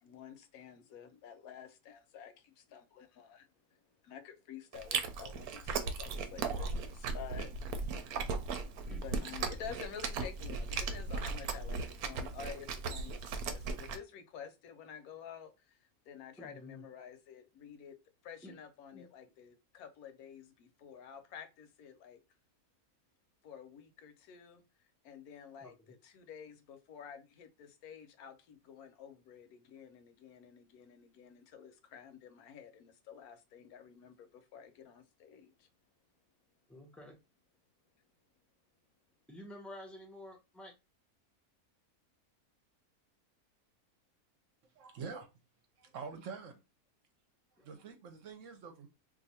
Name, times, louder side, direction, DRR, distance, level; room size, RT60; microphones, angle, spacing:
voice 1, 0.0-3.8 4.0-7.8 9.0-15.8 16.1-18.0 18.2-22.2 23.4-24.6 25.0-35.7, left 8 dB, 80° left, 1.1 m, -50 dB
Chewing mastication, 4.7-14.0, right 4 dB, 85° right, 1.1 m, -37 dB
voice 2, 8.9-9.4 16.4-16.9 18.4-18.6 18.9-19.1 25.6-25.9 36.7-37.1 39.3-40.7 47.6-47.7, left 1 dB, ahead, 0.5 m, -51 dB
voice 3, 44.8-45.3 45.8-46.6 47.6-48.9, right 5 dB, 65° right, 1.0 m, -45 dB
2.6 x 2.5 x 4.1 m
omnidirectional pair, 1.6 m